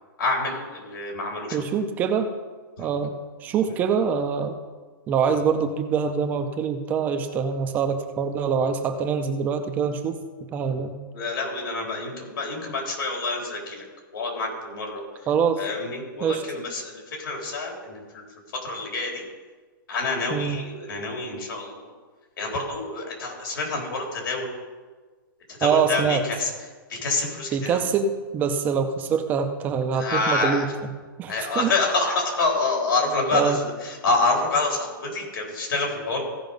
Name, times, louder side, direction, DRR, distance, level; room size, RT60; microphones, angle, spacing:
voice 1, 0.2-1.8 2.8-2.9 11.1-13.8 14.1-15.0 15.6-18.2 18.5-19.2 19.9-21.9 22.4-24.5 25.5-26.5 26.9-27.8 29.9-30.6 31.3-36.2, left 3 dB, 80° left, 0 dB, 3.9 m, -27 dB
voice 2, 1.5-2.3 2.8-3.1 3.4-4.6 5.1-10.2 10.5-10.9 15.3-15.6 16.2-16.4 20.3-20.6 25.6-26.2 27.5-30.7 31.2-31.7 33.3-33.6, right 6 dB, 15° right, 7 dB, 0.5 m, -24 dB
16.0 x 5.3 x 5.3 m, 1.4 s
hypercardioid pair, 170°, 11 cm